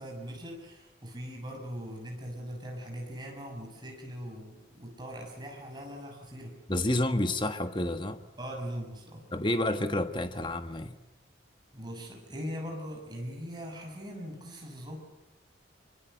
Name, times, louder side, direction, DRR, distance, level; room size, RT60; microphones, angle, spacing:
voice 1, 0.0-6.6 8.4-9.2 11.7-15.0, equal, 20° right, 6.6 m, -40 dB
voice 2, 6.7-8.2 9.3-10.9, left 1 dB, 25° left, 1.3 m, -29 dB
25.5 x 25.0 x 8.0 m
head